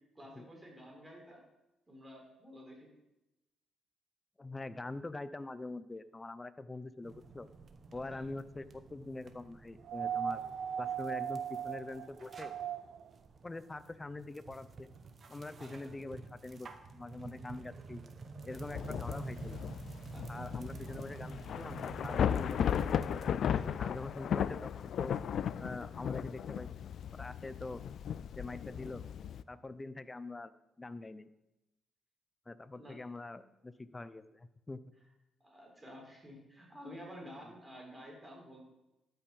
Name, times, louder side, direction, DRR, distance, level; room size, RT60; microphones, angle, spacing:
voice 1, 0.1-1.4 1.9-2.9 7.9-8.3 15.6-16.1 20.1-20.6 23.4-23.7 32.7-33.0 35.4-38.6, equal, 15° right, -1 dB, 3.9 m, -51 dB
voice 2, 4.4-7.5 7.9-10.4 10.8-12.5 13.4-14.9 15.3-18.0 18.5-19.6 20.3-22.7 23.6-25.2 25.6-26.7 27.1-27.8 28.3-29.0 29.5-30.5 30.8-31.3 32.5-34.8, left 2 dB, 20° left, 14 dB, 0.6 m, -44 dB
sound 1, 7.0-23.3, right 4 dB, 50° right, 1.0 m, -49 dB
sound 2, 9.8-13.1 14.5-14.6, right 8 dB, 70° right, 0.5 m, -38 dB
Thunder / Rain, 18.5-29.4, left 8 dB, 65° left, 0.3 m, -36 dB
12.5 x 5.8 x 5.3 m, 0.93 s
cardioid pair, 80°, 0 cm